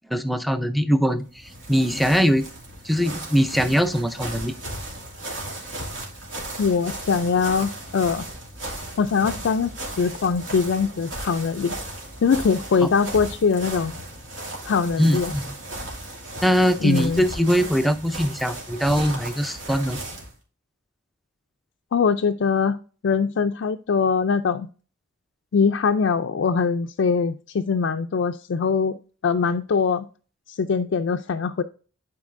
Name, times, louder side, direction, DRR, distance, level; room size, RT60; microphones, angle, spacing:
voice 1, 0.1-2.5 2.8-4.6 15.0-15.5 16.4-20.0, equal, ahead, 8 dB, 0.5 m, -22 dB
sound 1, 1.2-20.3, right 1 dB, 75° right, 2.7 m, -36 dB
voice 2, 6.6-8.2 9.0-9.7 10.0-11.8 12.2-14.0 14.7-15.3 16.8-17.2 21.9-22.8 23.0-24.7 25.5-29.0 29.2-30.1 30.5-31.6, left 5 dB, 70° left, 5 dB, 0.4 m, -22 dB
10.5 x 4.6 x 2.5 m, 0.38 s
head